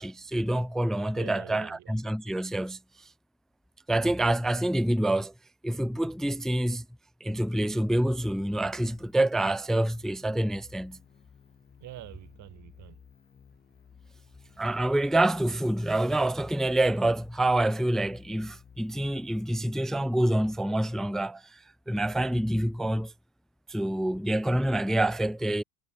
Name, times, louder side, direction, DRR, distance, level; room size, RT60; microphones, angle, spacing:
voice 1, 0.0-2.8 3.9-5.3 5.6-6.8 7.2-11.0 14.6-21.6 21.9-23.1 23.7-25.6, right 1 dB, ahead, 0.3 m, -27 dB
voice 2, 1.1-2.0 11.8-13.0, right 14 dB, 40° right, 7.9 m, -45 dB
sound 1, 8.3-19.7, left 7 dB, 20° left, 6.1 m, -55 dB
supercardioid pair, 145°, 43 cm